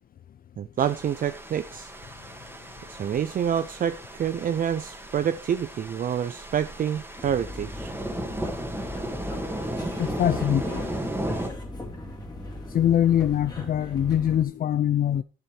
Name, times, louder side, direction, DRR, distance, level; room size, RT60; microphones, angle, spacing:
voice 1, 0.6-1.9 2.9-7.9, right 9 dB, 45° right, 0.5 m, -27 dB
sound 1, 0.8-11.5, right 1 dB, 10° right, 2.0 m, -35 dB
sound 2, 7.2-14.4, left 1 dB, 20° left, 2.8 m, -39 dB
voice 2, 10.0-10.9 12.7-15.2, left 10 dB, 45° left, 0.5 m, -23 dB
10.5 x 7.0 x 4.8 m
cardioid pair, 90°, 20 cm